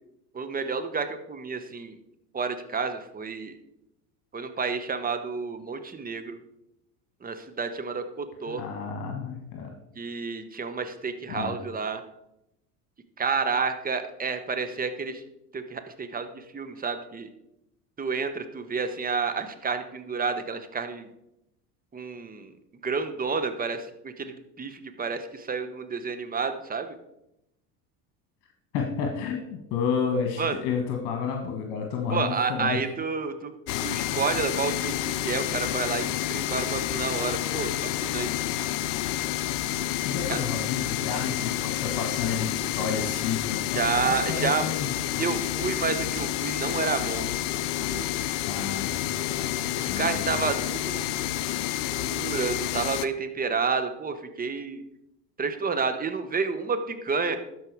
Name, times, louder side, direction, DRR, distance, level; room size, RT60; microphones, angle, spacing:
voice 1, 0.3-1.9 2.3-3.6 4.3-6.4 7.2-8.6 10.0-12.0 13.2-15.2 15.5-17.3 18.0-21.1 21.9-22.5 22.8-27.0 30.4-30.6 32.1-33.5 33.8-38.4 40.3-40.4 43.7-44.6 45.2-47.3 47.9-48.3 49.7-51.1 51.7-54.8 55.4-57.4, right 5 dB, 20° right, 9 dB, 1.0 m, -30 dB
voice 2, 8.5-9.7 11.3-11.5 28.7-32.8 40.0-45.2 48.4-50.4, left 6 dB, 55° left, 3 dB, 1.5 m, -31 dB
sound 1, 33.7-53.1, left 13 dB, 75° left, 0.6 m, -29 dB
12.5 x 4.8 x 4.7 m, 0.85 s
hypercardioid pair, 80°, 48 cm